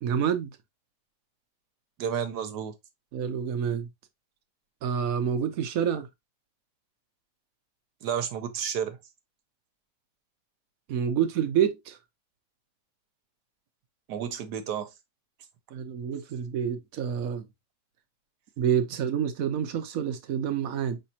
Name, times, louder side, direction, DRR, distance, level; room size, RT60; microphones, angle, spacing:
voice 1, 0.0-0.5 3.1-3.9 4.8-6.1 10.9-12.0 15.7-17.5 18.6-21.0, right 8 dB, 65° right, 1.1 m, -28 dB
voice 2, 2.0-2.7 8.0-9.0 14.1-14.9, right 8 dB, 85° right, 1.4 m, -31 dB
5.3 x 3.3 x 2.7 m
omnidirectional pair, 1.7 m